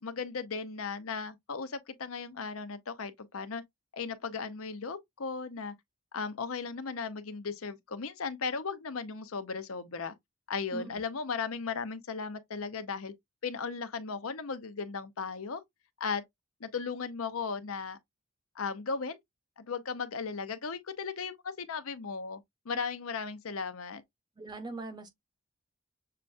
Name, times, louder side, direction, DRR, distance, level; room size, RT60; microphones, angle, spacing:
voice 1, 0.0-3.6 3.9-5.7 6.1-10.1 10.5-13.1 13.4-15.6 16.0-16.2 16.6-18.0 18.6-19.2 19.6-24.0, left 5 dB, 90° left, 0.7 m, -36 dB
voice 2, 24.4-25.1, right 3 dB, 20° right, 0.8 m, -41 dB
6.7 x 2.2 x 2.5 m
head